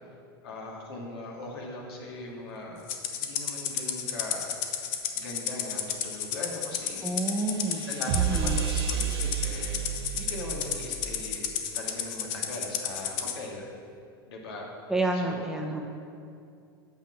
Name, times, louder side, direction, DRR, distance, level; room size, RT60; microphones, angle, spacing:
voice 1, 0.4-2.8 3.2-4.5 5.1-7.1 7.9-9.8 10.1-13.7 14.2-14.7 15.1-15.5, left 2 dB, 70° left, -2 dB, 2.1 m, -40 dB
Rattle (instrument), 2.9-13.4, left 9 dB, 50° left, 0.9 m, -32 dB
sound 1, 6.0-11.5, right 6 dB, 85° right, 1.1 m, -46 dB
voice 2, 7.0-7.8 8.1-8.6 14.9-15.8, right 2 dB, 5° right, 0 dB, 0.9 m, -29 dB
sound 2, 8.1-11.5, right 10 dB, 50° right, 0.4 m, -31 dB
8.7 x 6.1 x 5.7 m, 2.4 s
hypercardioid pair, 105°, 13 cm